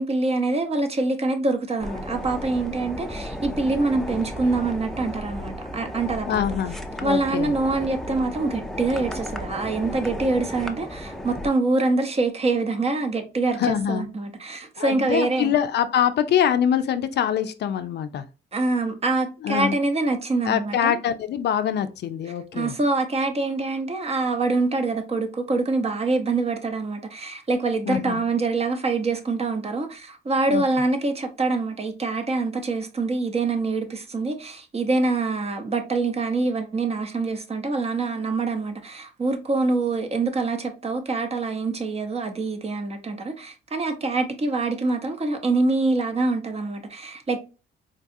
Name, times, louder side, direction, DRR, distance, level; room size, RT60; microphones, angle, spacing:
voice 1, 0.0-6.4 7.0-15.5 18.5-21.0 22.5-47.4, right 3 dB, 30° right, 0.7 m, -25 dB
sound 1, 1.8-11.5, left 1 dB, ahead, 0.5 m, -34 dB
voice 2, 6.3-7.5 13.6-14.1 14.8-18.3 19.4-19.8 20.5-22.7 27.9-28.3 30.5-30.6, left 9 dB, 60° left, 0.4 m, -24 dB
3.9 x 2.3 x 2.6 m
cardioid pair, 90°, 20 cm